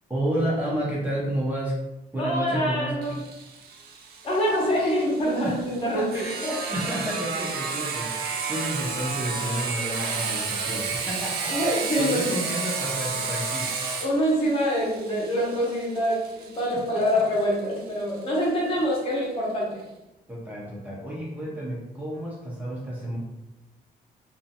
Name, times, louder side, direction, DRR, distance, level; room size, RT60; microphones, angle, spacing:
voice 1, 0.1-1.8 2.1-2.9 5.4-5.6 5.9-11.6 12.0-13.7 16.7-17.4 20.3-23.2, right 1 dB, 10° right, -6 dB, 0.5 m, -31 dB
voice 2, 2.2-3.2 4.2-6.6 11.5-12.4 14.0-19.8, equal, 35° left, -4 dB, 0.8 m, -25 dB
Sawing, 3.0-18.4, right 4 dB, 80° right, 0.5 m, -32 dB
2.5 x 2.4 x 2.7 m, 0.96 s
cardioid pair, 170°, 16 cm